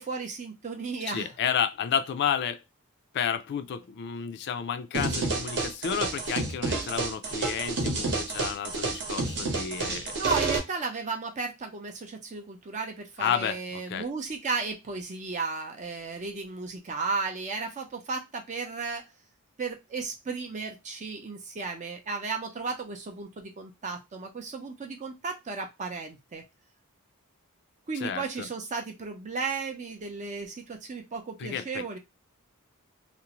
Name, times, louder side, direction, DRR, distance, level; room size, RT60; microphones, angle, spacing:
voice 1, 0.0-1.3 10.2-19.1 19.6-26.4 27.9-32.0, right 4 dB, 35° right, 0.5 m, -34 dB
voice 2, 1.1-2.6 3.1-10.1 13.2-14.1 28.0-28.5 31.4-32.0, left 8 dB, 50° left, 0.3 m, -31 dB
sound 1, 4.9-10.6, right 3 dB, 55° right, 0.9 m, -29 dB
2.5 x 2.0 x 2.9 m
head